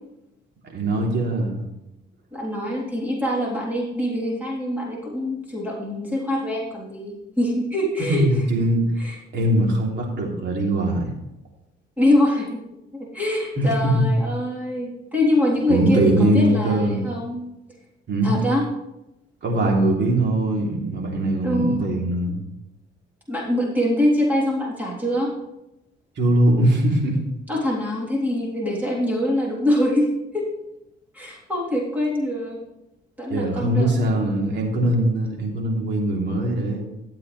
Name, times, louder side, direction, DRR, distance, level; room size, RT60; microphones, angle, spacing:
voice 1, 0.7-1.6 8.0-8.8 9.3-11.1 13.6-14.1 15.7-17.0 18.1-18.4 19.4-22.4 26.2-27.2 33.3-36.9, right 1 dB, 60° right, -1 dB, 3.0 m, -21 dB
voice 2, 2.3-8.2 9.0-9.1 12.0-12.6 12.9-17.4 18.2-18.6 21.4-21.9 23.3-25.3 27.5-30.1 30.3-30.4 31.1-32.6 33.2-33.9, left 1 dB, 10° right, -4 dB, 3.4 m, -24 dB
14.0 x 8.1 x 3.2 m, 0.90 s
cardioid pair, 90°, 20 cm